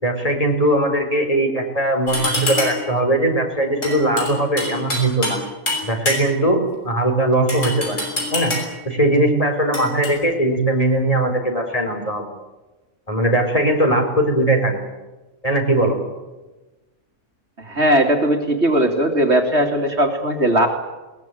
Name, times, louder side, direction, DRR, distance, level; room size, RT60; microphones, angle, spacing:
voice 1, 0.0-5.4 5.8-6.6 6.8-8.0 8.3-8.5 8.8-12.2 13.1-14.8 15.4-16.0, right 1 dB, 25° left, 2 dB, 4.5 m, -19 dB
sound 1, 2.1-2.9 3.8-5.4 5.7-6.5 7.5-8.8 9.7-10.1, left 1 dB, 65° left, 7.2 m, -25 dB
voice 2, 17.6-20.7, right 1 dB, 50° right, 4 dB, 2.9 m, -18 dB
21.5 x 20.0 x 9.3 m, 1.1 s
omnidirectional pair, 1.4 m